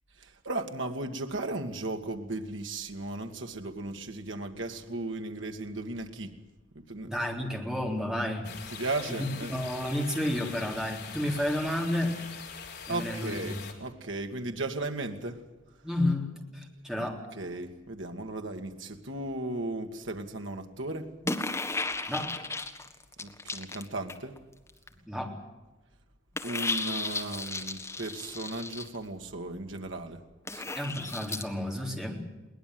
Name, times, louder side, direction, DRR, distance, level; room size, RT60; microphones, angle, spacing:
voice 1, 0.2-6.3 6.8-7.1 8.7-9.5 12.9-15.4 17.3-21.1 23.2-24.4 26.4-30.2 30.5-30.6, right 2 dB, 70° right, 5 dB, 2.1 m, -36 dB
voice 2, 7.1-8.5 9.2-12.1 12.9-13.6 15.8-17.2 22.1-22.3 25.1-25.3 30.8-32.2, left 1 dB, 5° right, 1 dB, 3.8 m, -31 dB
sound 1, 8.4-13.7, left 6 dB, 55° left, 3.6 m, -43 dB
sound 2, 21.2-24.4 24.7-24.9 26.4-28.9 30.5-31.4, left 3 dB, 15° left, 1.5 m, -34 dB
22.0 x 19.5 x 7.8 m, 1.1 s
head